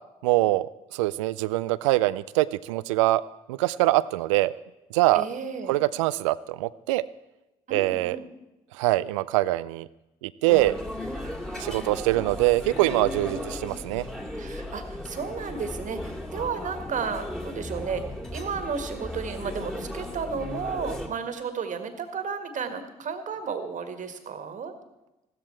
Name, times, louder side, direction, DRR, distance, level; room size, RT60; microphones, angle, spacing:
voice 1, 0.2-3.2 3.5-4.5 4.9-5.3 5.7-7.0 7.7-8.2 8.7-9.9 10.2-10.8 11.6-14.1, right 18 dB, 85° right, 18 dB, 0.4 m, -24 dB
voice 2, 5.1-5.8 7.7-8.3 11.2-12.5 12.8-13.7 14.4-18.0 18.3-24.7, right 5 dB, 55° right, 8 dB, 1.8 m, -34 dB
sound 1, 10.5-21.1, left 1 dB, 5° left, 2.3 m, -36 dB
15.0 x 13.5 x 4.5 m, 0.97 s
hypercardioid pair, 50°, 16 cm